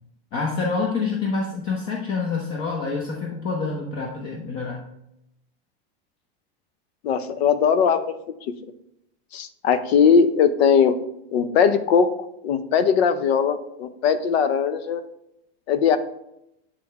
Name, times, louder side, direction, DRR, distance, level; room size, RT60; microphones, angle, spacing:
voice 1, 0.3-4.8, left 4 dB, 40° left, -1 dB, 1.0 m, -27 dB
voice 2, 7.0-8.1 9.3-10.9 11.3-15.0 15.7-16.0, left 6 dB, 85° left, 11 dB, 0.7 m, -20 dB
8.9 x 3.4 x 3.5 m, 0.81 s
supercardioid pair, 140°, 31 cm